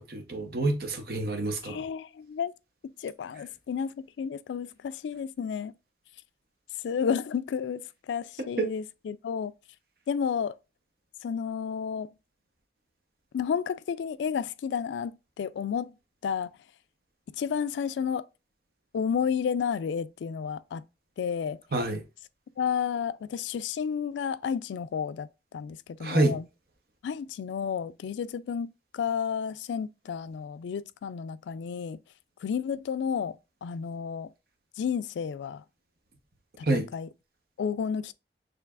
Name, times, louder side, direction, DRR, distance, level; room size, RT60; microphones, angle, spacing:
voice 1, 0.0-1.8 8.6-8.7 21.7-22.0 26.0-26.4 36.6-36.9, right 2 dB, 55° right, 0.9 m, -27 dB
voice 2, 1.6-2.5 2.8-5.7 6.8-9.5 10.1-10.6 11.2-12.1 13.3-15.9 16.2-16.5 17.4-18.3 18.9-20.8 21.2-21.6 22.6-25.3 25.5-26.4 27.0-32.0 32.4-34.3 34.8-35.6 36.6-37.1 37.6-38.1, left 7 dB, 85° left, 0.3 m, -31 dB
6.8 x 3.2 x 2.4 m
head